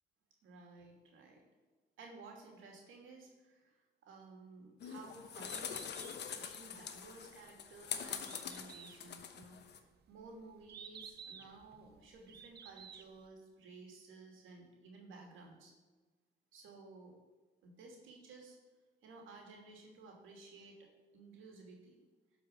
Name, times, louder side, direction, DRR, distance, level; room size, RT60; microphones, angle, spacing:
voice 1, 0.4-1.4 2.0-15.7 16.5-17.1 17.6-18.6 19.0-20.8 21.1-22.0, right 3 dB, 85° right, 0 dB, 2.8 m, -55 dB
sound 1, 4.8-9.8, left 7 dB, 60° left, 1.1 m, -44 dB
Bird, 5.3-13.3, right 7 dB, 55° right, 1.0 m, -55 dB
11.5 x 5.4 x 6.9 m, 1.3 s
cardioid pair, 90°, 20 cm